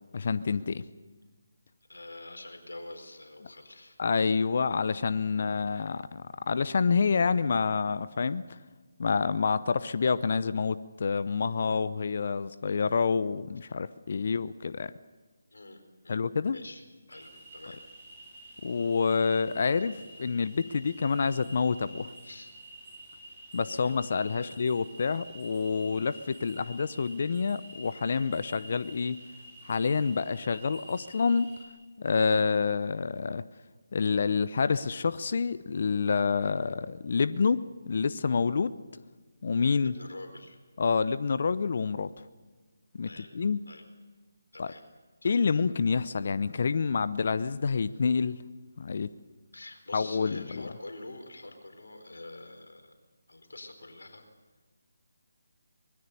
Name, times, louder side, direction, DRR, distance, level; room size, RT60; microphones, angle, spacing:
voice 1, 0.1-0.8 4.0-8.6 9.0-14.9 16.1-16.6 18.6-22.1 23.5-29.2 29.7-31.5 32.0-33.4 33.9-38.8 39.4-39.9 40.8-42.1 42.9-43.1 43.3-43.6 44.6-44.7 45.2-48.4 48.8-49.1 49.9-50.6, left 5 dB, 50° left, 14 dB, 0.7 m, -28 dB
voice 2, 1.9-4.0 15.5-16.2 16.5-16.8 17.1-17.8 22.2-22.5 23.7-24.0 24.4-24.5 39.8-40.6 43.0-43.3 43.7-43.8 44.5-44.8 45.2-45.4 49.5-53.0 53.3-54.3, left 2 dB, 80° left, 5 dB, 4.5 m, -46 dB
sound 1, 17.1-31.6, right 1 dB, 15° right, 7.1 m, -49 dB
23.5 x 21.0 x 6.9 m, 1.3 s
figure-of-eight pair, 155°, 0 cm